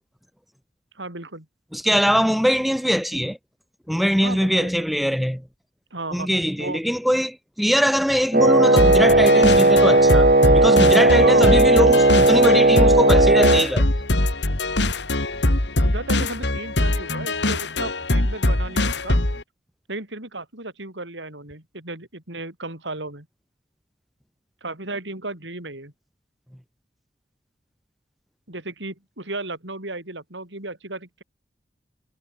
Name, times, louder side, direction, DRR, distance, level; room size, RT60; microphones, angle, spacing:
voice 1, 0.9-1.5 4.2-4.7 5.9-6.3 6.6-6.8 11.2-11.6 15.8-19.2 19.9-23.3 24.6-25.9 28.5-31.2, right 2 dB, 90° right, 6.1 m, -34 dB
voice 2, 1.7-3.4 3.9-5.4 6.1-13.9, equal, ahead, 4.6 m, -22 dB
Wind instrument woodwind instrument, 8.3-13.7, right 2 dB, 50° right, 1.3 m, -15 dB
sound 1, 8.8-19.4, left 1 dB, 80° left, 2.8 m, -22 dB
head